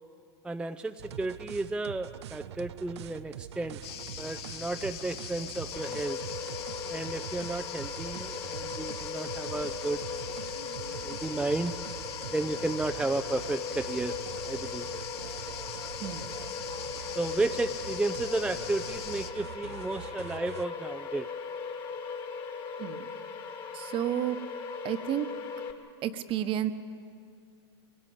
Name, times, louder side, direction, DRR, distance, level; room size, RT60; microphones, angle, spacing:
voice 1, 0.4-3.8 4.2-6.2 6.9-10.0 11.0-11.7 12.3-14.2 14.4-14.9 17.1-21.3, right 2 dB, 5° right, 7 dB, 0.6 m, -33 dB
sound 1, 1.0-20.7, right 11 dB, 75° right, 0.5 m, -44 dB
sound 2, 3.8-19.3, left 10 dB, 65° left, 1.4 m, -42 dB
sound 3, 5.7-25.7, left 5 dB, 35° left, 2.2 m, -39 dB
voice 2, 23.7-24.4 24.8-25.3 26.0-26.7, right 11 dB, 40° right, 10 dB, 1.2 m, -31 dB
23.5 x 17.5 x 8.6 m, 2.3 s
hypercardioid pair, 105°, 14 cm